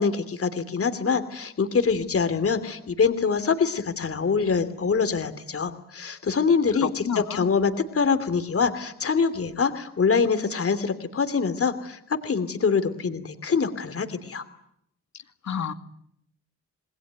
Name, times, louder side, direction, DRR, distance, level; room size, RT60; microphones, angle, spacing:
voice 1, 0.0-14.4, left 5 dB, 50° left, 10 dB, 3.0 m, -24 dB
voice 2, 6.8-7.5 15.4-15.7, left 8 dB, 70° left, 8 dB, 2.3 m, -29 dB
27.5 x 20.5 x 9.5 m, 0.74 s
cardioid pair, 85°, 29 cm